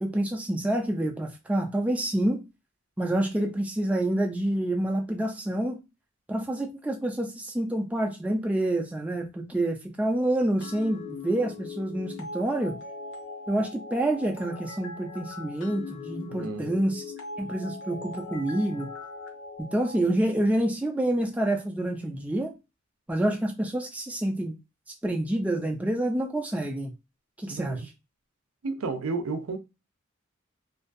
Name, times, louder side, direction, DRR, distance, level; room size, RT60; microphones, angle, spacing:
voice 1, 0.0-2.4 3.0-5.8 6.3-12.8 13.5-17.1 17.4-18.9 19.7-22.5 23.1-24.5 25.0-26.9 27.4-27.8, right 1 dB, 5° right, 0.3 m, -27 dB
sound 1, 10.6-20.0, left 4 dB, 60° left, 0.6 m, -40 dB
voice 2, 16.3-16.7 27.5-27.9 28.6-29.6, right 4 dB, 75° right, 0.5 m, -32 dB
2.6 x 2.2 x 2.5 m
head